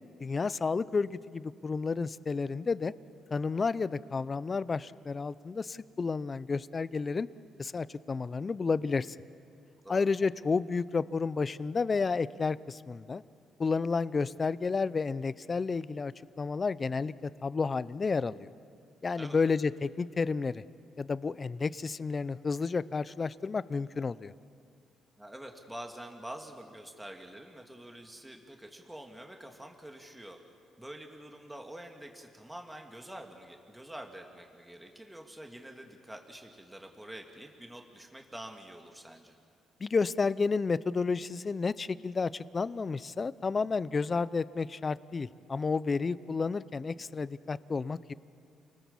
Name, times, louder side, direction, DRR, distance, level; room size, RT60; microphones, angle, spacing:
voice 1, 0.2-2.9 3.3-7.3 7.6-9.2 9.9-13.2 13.6-18.5 19.0-20.6 21.0-24.3 39.8-48.1, left 4 dB, 35° left, 18 dB, 0.6 m, -31 dB
voice 2, 25.2-30.4 30.8-39.4, right 1 dB, 10° right, 3 dB, 2.1 m, -46 dB
29.5 x 19.5 x 7.2 m, 2.3 s
cardioid pair, 90°, 0 cm